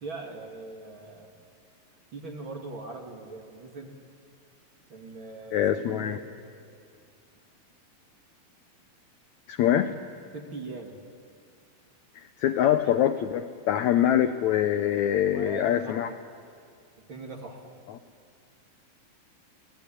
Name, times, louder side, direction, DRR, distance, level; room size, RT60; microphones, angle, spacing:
voice 1, 0.0-1.3 2.1-4.0 4.9-6.3 9.7-9.8 10.3-11.0 15.3-15.9 17.1-17.6, right 3 dB, 40° right, 2 dB, 2.4 m, -41 dB
voice 2, 5.5-6.2 9.5-9.9 12.1-16.1, left 10 dB, 80° left, 9 dB, 1.7 m, -24 dB
27.0 x 18.0 x 10.0 m, 2.3 s
omnidirectional pair, 4.2 m